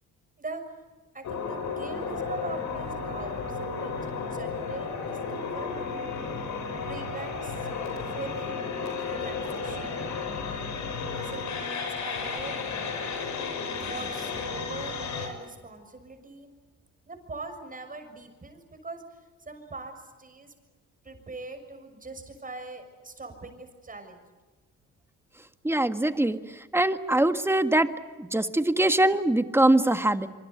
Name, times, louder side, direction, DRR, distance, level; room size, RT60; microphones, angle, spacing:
voice 1, 1.1-5.8 6.8-7.7 8.1-8.6 9.0-10.0 11.1-12.5 12.8-13.0 13.4-16.5 17.1-20.5 21.0-24.2, right 3 dB, 25° right, 7 dB, 6.5 m, -42 dB
sound 1, 1.2-15.3, left 5 dB, 70° left, 6.5 m, -33 dB
voice 2, 25.6-26.4 26.7-27.9 28.2-30.3, right 1 dB, 10° right, 9 dB, 1.7 m, -22 dB
26.5 x 24.5 x 8.3 m, 1.3 s
cardioid pair, 90°, 30 cm